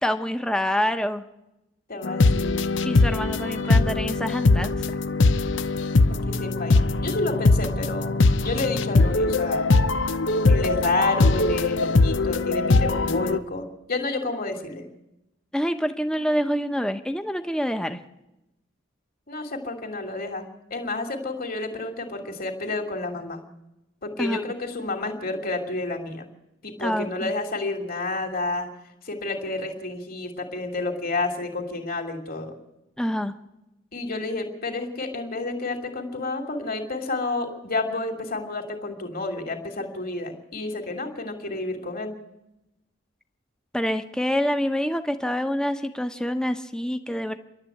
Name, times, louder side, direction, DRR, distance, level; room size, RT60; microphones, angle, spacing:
voice 1, 0.0-1.2 2.8-4.8 15.5-18.0 24.2-24.4 26.8-27.3 33.0-33.3 43.7-47.4, equal, 5° left, 7 dB, 1.0 m, -26 dB
voice 2, 1.9-2.5 6.1-8.1 8.4-9.7 10.5-14.8 19.3-20.4 20.7-23.4 24.0-26.3 26.6-28.7 29.0-32.5 33.9-42.1, left 2 dB, 50° left, 3 dB, 2.9 m, -30 dB
sound 1, 2.0-13.4, left 3 dB, 80° left, 0.8 m, -21 dB
29.0 x 12.0 x 8.6 m, 0.96 s
head